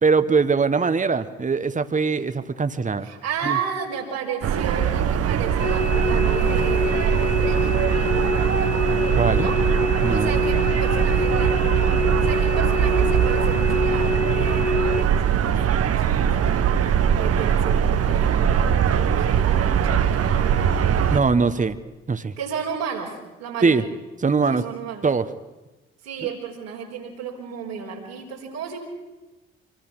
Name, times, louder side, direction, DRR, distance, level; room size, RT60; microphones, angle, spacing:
voice 1, 0.0-3.1 3.5-3.6 9.2-9.5 10.0-10.3 21.1-21.8 22.1-22.3 23.6-23.8 24.2-24.6 25.0-25.2, right 4 dB, 25° right, 11 dB, 1.4 m, -21 dB
voice 2, 3.0-7.8 9.3-9.6 10.1-11.6 12.2-15.6 16.0-16.6 17.2-20.5 22.4-23.9 24.5-25.1 26.0-28.8, right 7 dB, 80° right, -2 dB, 4.4 m, -33 dB
sound 1, 4.4-21.2, right 8 dB, 50° right, 1.2 m, -21 dB
sound 2, 5.6-15.0, left 1 dB, 20° left, 2.1 m, -25 dB
26.0 x 23.5 x 6.2 m, 1.1 s
figure-of-eight pair, 40°, 30 cm